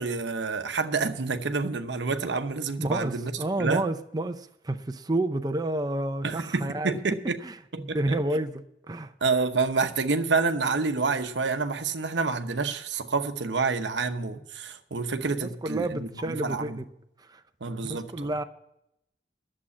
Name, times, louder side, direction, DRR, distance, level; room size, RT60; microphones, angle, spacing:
voice 1, 0.0-3.3 3.6-3.9 6.2-7.4 7.7-8.2 9.2-16.8 17.6-18.3, right 4 dB, 90° right, 0.9 m, -28 dB
voice 2, 2.8-7.0 7.4-9.1 15.4-16.8 17.2-17.4 17.8-18.4, right 1 dB, 25° right, 0.6 m, -30 dB
11.0 x 7.6 x 8.4 m
head